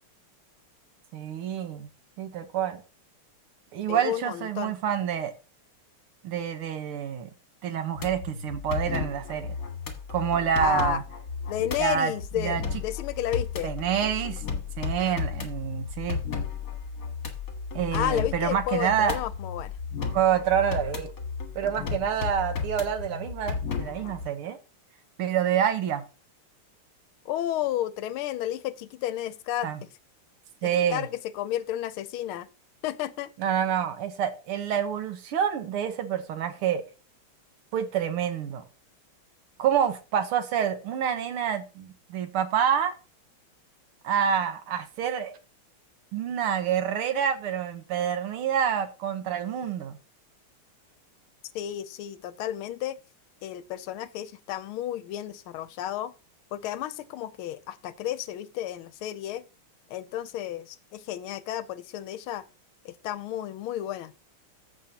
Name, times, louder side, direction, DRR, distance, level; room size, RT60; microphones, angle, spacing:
voice 1, 1.1-1.9 2.2-2.8 3.7-5.3 6.2-7.3 7.6-9.6 10.1-11.0 11.8-12.6 13.6-14.4 14.8-16.2 17.7-19.2 20.1-21.1 21.6-24.6 25.2-26.0 29.6-29.8 30.6-31.1 33.4-36.8 37.7-38.6 39.6-42.9 44.0-45.4 46.1-50.0, right 9 dB, 80° right, 2.0 m, -27 dB
voice 2, 3.9-4.7 10.6-11.0 11.5-13.7 17.9-19.8 27.2-29.9 30.6-32.5 32.8-33.3 51.5-53.0 53.4-56.1 56.5-59.4 59.9-62.4 62.8-64.1, left 12 dB, 80° left, 1.4 m, -32 dB
sound 1, 8.0-24.3, left 5 dB, 45° left, 1.7 m, -34 dB
14.5 x 5.5 x 2.8 m
omnidirectional pair, 2.4 m